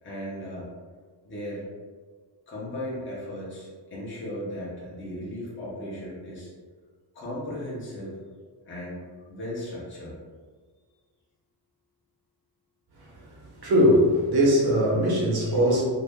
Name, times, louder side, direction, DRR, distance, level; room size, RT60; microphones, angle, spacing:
voice 1, 0.0-0.7 1.2-1.6 2.5-6.5 7.1-8.1 8.6-9.0 9.3-10.2, left 1 dB, 25° left, -7 dB, 0.9 m, -36 dB
voice 2, 13.0-15.8, equal, 55° right, -4 dB, 1.1 m, -21 dB
2.8 x 2.5 x 3.5 m, 1.5 s
wide cardioid pair, 115°, 44 cm